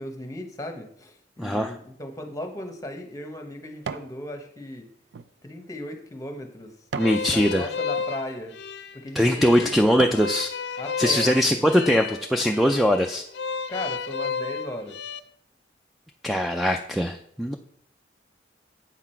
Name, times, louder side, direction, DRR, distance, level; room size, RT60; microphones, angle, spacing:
voice 1, 0.0-4.9 5.4-6.7 7.3-8.6 8.9-9.8 10.8-11.7 13.7-15.0, left 1 dB, 20° left, 5 dB, 1.0 m, -36 dB
voice 2, 1.4-1.7 7.0-7.6 9.2-10.5 11.0-13.2 16.2-17.6, equal, ahead, 4 dB, 0.3 m, -21 dB
sound 1, 2.3-4.2 4.6-7.3 7.9-8.1 8.8-9.0 9.5-10.3 10.8-10.9, right 5 dB, 75° right, 0.4 m, -39 dB
sound 2, 7.0-15.2, left 5 dB, 70° left, 0.5 m, -33 dB
8.2 x 6.0 x 4.4 m, 0.66 s
head